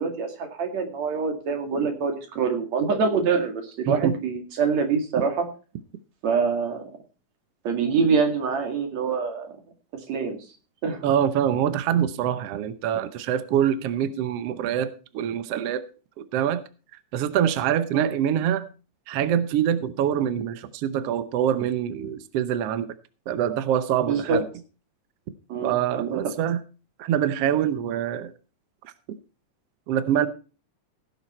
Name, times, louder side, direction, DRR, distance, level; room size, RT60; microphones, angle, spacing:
voice 1, 0.0-5.5 6.2-6.8 7.6-9.5 10.1-10.4 10.8-11.0 17.9-18.1 24.1-24.4 25.5-26.2, right 5 dB, 55° right, 3.2 m, -25 dB
voice 2, 3.9-4.2 11.0-15.8 16.3-16.6 17.1-18.7 19.1-22.9 23.3-24.4 25.6-26.6 27.0-28.3 29.9-30.3, right 10 dB, 75° right, 1.4 m, -25 dB
16.5 x 7.4 x 4.3 m
omnidirectional pair, 3.9 m